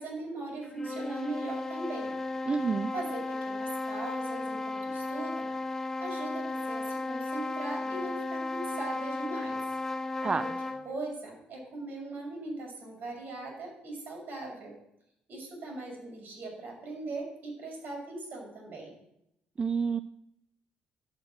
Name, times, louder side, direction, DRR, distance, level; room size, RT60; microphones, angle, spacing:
voice 1, 0.0-2.1 2.9-5.5 6.0-9.6 10.4-10.5 10.8-14.7 15.3-18.9, right 2 dB, 55° right, 0 dB, 6.5 m, -39 dB
sound 1, 0.6-10.9, left 2 dB, 10° left, 1.1 m, -35 dB
voice 2, 2.5-2.9 10.2-10.5 19.6-20.0, right 5 dB, 25° right, 12 dB, 0.4 m, -28 dB
12.0 x 6.6 x 9.0 m, 0.80 s
cardioid pair, 125°, 4 cm